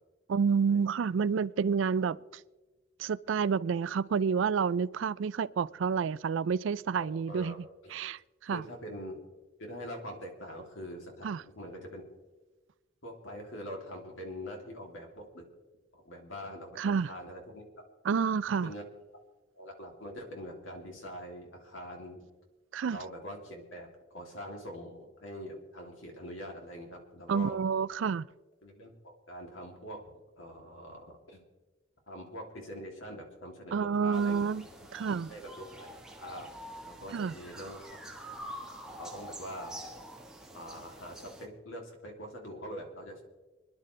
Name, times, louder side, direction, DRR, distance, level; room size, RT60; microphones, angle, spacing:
voice 1, 0.3-2.2 3.0-7.6 7.9-8.6 11.2-11.4 16.8-17.1 18.1-18.7 22.7-23.0 27.3-28.3 33.7-34.6 34.9-35.3 37.1-37.3, right 6 dB, 70° right, 0.4 m, -29 dB
voice 2, 7.0-7.6 7.8-7.9 8.5-9.2 9.6-12.0 13.0-15.5 15.9-17.6 18.6-18.8 19.6-22.2 22.9-27.6 28.6-30.0 30.4-31.4 32.1-34.5 35.3-35.9 36.1-36.5 36.8-38.0 39.0-39.9 40.5-43.2, equal, 80° left, 2.9 m, -44 dB
sound 1, 34.1-41.5, equal, 5° right, 1.3 m, -46 dB
26.0 x 10.5 x 3.3 m
head